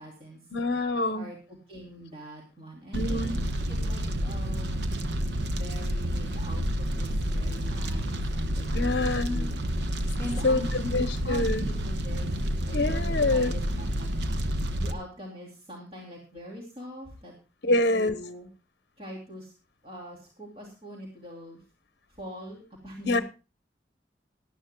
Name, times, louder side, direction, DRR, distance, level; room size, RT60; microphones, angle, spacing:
voice 1, 0.0-0.4 1.1-3.4 3.7-4.8 5.5-6.6 6.9-9.7 10.2-14.1 14.4-17.3 17.7-18.5 19.0-19.5 19.8-21.6 22.1-23.2, equal, 30° right, -2 dB, 2.8 m, -43 dB
voice 2, 0.5-1.3 2.9-3.3 8.7-9.5 10.4-11.7 12.7-13.5 17.6-18.2 23.1-23.2, left 2 dB, 60° left, 10 dB, 0.8 m, -26 dB
Fire, 2.9-14.9, equal, 70° right, 0.9 m, -29 dB
19.5 x 12.0 x 2.2 m, 0.31 s
head